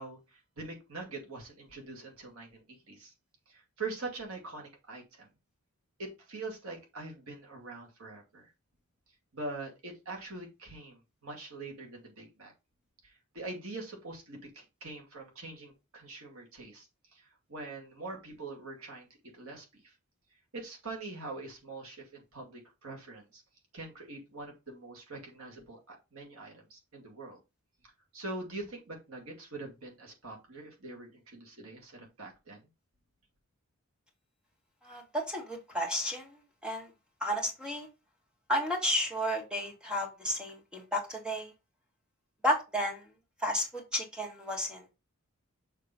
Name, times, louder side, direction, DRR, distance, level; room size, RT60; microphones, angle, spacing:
voice 1, 0.0-3.1 3.5-5.3 6.0-8.5 9.3-12.5 13.0-19.1 19.3-19.9 20.5-23.4 23.7-27.4 27.8-32.7, right 3 dB, 70° right, 0 dB, 2.3 m, -44 dB
voice 2, 34.8-36.3 36.6-36.9 37.2-37.9 38.5-41.5 42.4-43.1 43.4-45.0, equal, 5° right, 1 dB, 2.0 m, -32 dB
6.8 x 3.6 x 5.2 m, 0.26 s
head